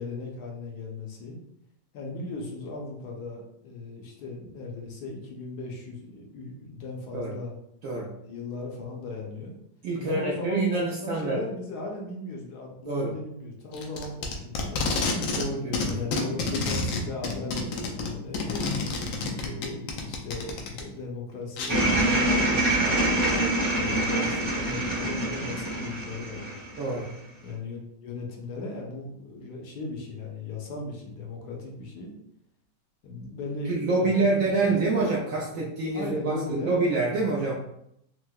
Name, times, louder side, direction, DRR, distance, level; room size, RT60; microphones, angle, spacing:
voice 1, 0.0-1.4 1.9-7.5 8.2-9.6 10.0-15.0 15.8-18.7 19.3-23.0 23.7-26.6 27.4-32.1 33.0-35.1 35.5-35.6 35.9-36.7, left 3 dB, 70° left, 0 dB, 1.1 m, -37 dB
voice 2, 9.8-11.4 12.8-13.1 15.3-15.9 18.6-18.8 26.8-27.1 33.7-37.5, right 3 dB, 80° right, -3 dB, 0.7 m, -26 dB
Packing tape duct tape, 13.7-15.5 15.7-20.8 21.6-21.7, left 3 dB, 90° left, 1.3 m, -29 dB
sound 1, 21.7-27.1, right 1 dB, 40° right, 0.4 m, -25 dB
4.4 x 2.0 x 2.2 m, 0.75 s
omnidirectional pair, 2.0 m